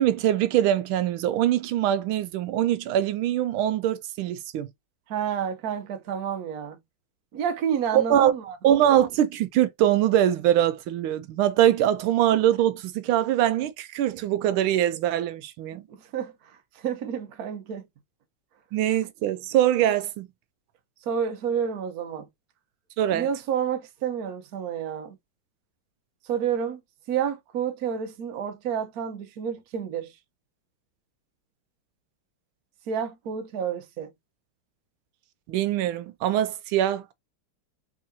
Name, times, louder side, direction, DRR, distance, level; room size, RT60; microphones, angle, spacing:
voice 1, 0.0-4.7 7.9-8.3 8.6-15.8 18.7-20.3 23.0-23.3 35.5-37.1, right 11 dB, 90° right, 1.4 m, -23 dB
voice 2, 5.1-6.8 7.3-8.6 15.9-17.9 21.0-22.3 23.1-25.2 26.2-26.8 27.1-30.1 32.9-34.1, right 8 dB, 55° right, 1.1 m, -30 dB
3.7 x 3.3 x 2.7 m
omnidirectional pair, 2.2 m